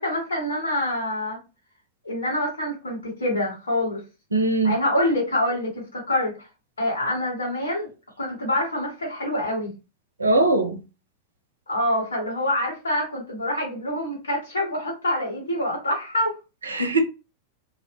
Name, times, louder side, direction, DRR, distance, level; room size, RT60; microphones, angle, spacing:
voice 1, 0.0-1.4 2.0-4.0 4.6-6.5 6.8-7.9 8.2-9.7 11.7-16.4, left 1 dB, 75° left, 1.4 m, -26 dB
voice 2, 4.3-4.8 10.2-10.8 16.6-17.0, right 2 dB, 75° right, 0.5 m, -21 dB
2.5 x 2.0 x 2.9 m
figure-of-eight pair, 90°, 0 cm